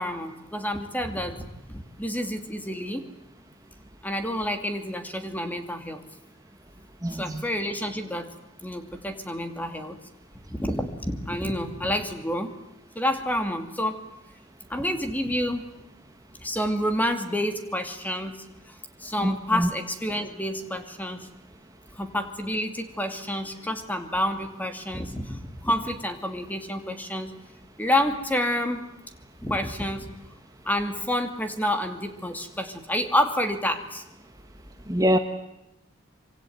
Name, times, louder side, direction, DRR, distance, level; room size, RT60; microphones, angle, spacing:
voice 1, 0.0-3.1 4.0-6.0 7.1-8.3 8.6-10.0 10.5-12.5 12.9-14.0 14.7-15.7 16.4-18.4 19.0-21.3 22.0-27.3 27.8-28.8 29.4-30.1 30.6-34.0, left 1 dB, 10° left, 7 dB, 2.5 m, -29 dB
voice 2, 7.0-7.4 19.2-19.7 34.9-35.2, equal, 20° right, 6 dB, 1.4 m, -24 dB
25.5 x 24.5 x 9.3 m, 0.89 s
head